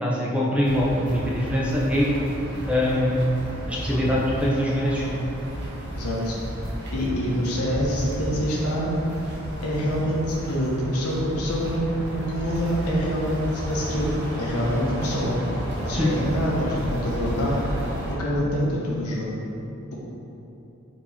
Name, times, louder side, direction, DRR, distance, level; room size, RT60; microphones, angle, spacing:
voice 1, 0.0-2.1 2.7-3.2 3.7-5.2 15.9-16.1, left 1 dB, 5° right, -5 dB, 0.5 m, -23 dB
sound 1, 0.6-18.2, equal, 50° right, 0.7 m, -33 dB
voice 2, 5.9-6.4 6.9-8.9 9.6-11.8 12.3-14.1 14.4-15.4 15.8-17.7 18.1-19.3, equal, 90° left, -4 dB, 0.9 m, -26 dB
4.5 x 2.9 x 4.1 m, 3.0 s
head